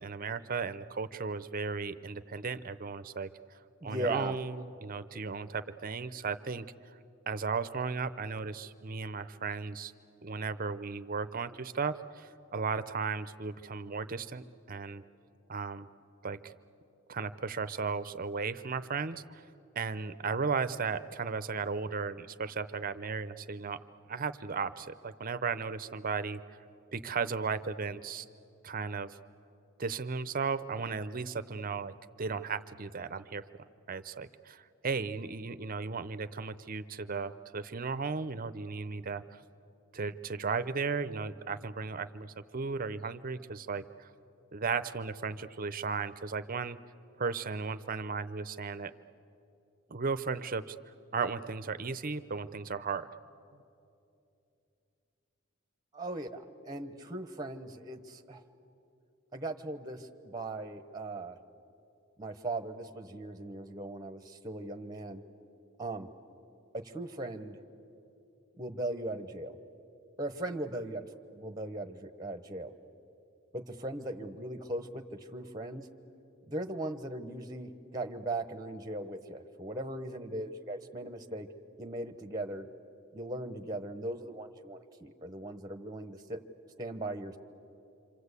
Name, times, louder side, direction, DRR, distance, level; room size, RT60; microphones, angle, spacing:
voice 1, 0.0-3.3 3.8-6.7 7.3-9.9 10.2-15.0 15.5-15.9 16.2-16.5 17.1-19.4 19.8-23.8 24.1-26.4 26.9-28.3 28.6-29.2 29.8-33.4 33.9-39.4 39.9-44.1 44.5-46.8 47.2-48.9 49.9-50.8 51.1-53.1, right 5 dB, 40° right, 12 dB, 0.7 m, -35 dB
voice 2, 3.8-4.4 55.9-58.4 59.3-61.4 62.2-65.2 65.8-66.1 66.7-67.6 68.6-69.6 70.2-71.1 71.3-72.7 73.5-75.9 76.5-81.5 81.8-82.7 83.1-86.4 86.8-87.4, right 2 dB, 20° right, 7 dB, 1.0 m, -38 dB
27.0 x 26.5 x 8.3 m, 2.8 s
head